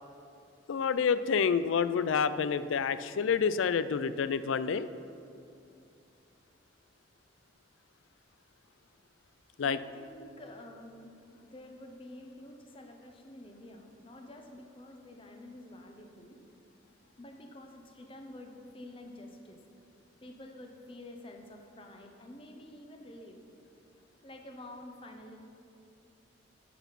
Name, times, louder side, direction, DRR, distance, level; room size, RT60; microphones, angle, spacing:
voice 1, 0.7-4.9 9.6-9.8, left 6 dB, 80° left, 14 dB, 0.4 m, -28 dB
voice 2, 9.6-11.2 11.4-16.4 17.2-19.6 20.2-23.4 24.2-25.4, left 1 dB, 25° left, 3 dB, 0.8 m, -49 dB
9.4 x 7.1 x 5.8 m, 2.6 s
head